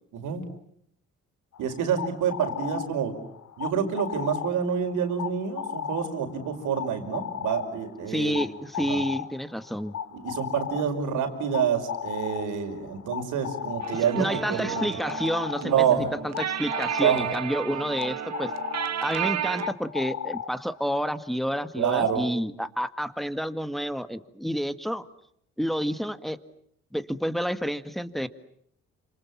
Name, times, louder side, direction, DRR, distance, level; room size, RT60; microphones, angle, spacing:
voice 1, 0.1-0.4 1.6-3.1 3.6-8.4 8.9-9.0 10.1-14.9 15.6-16.1 17.0-17.3 21.8-22.3, right 8 dB, 85° right, 7 dB, 5.3 m, -27 dB
sound 1, 1.5-21.0, left 9 dB, 65° left, 3.5 m, -36 dB
voice 2, 8.1-10.0 13.9-18.5 19.0-25.1 25.6-26.4 26.9-28.3, equal, ahead, 11 dB, 1.8 m, -29 dB
sound 2, 13.8-19.7, right 10 dB, 60° right, 1.7 m, -32 dB
30.0 x 27.5 x 7.3 m, 0.71 s
cardioid pair, 90°, 30 cm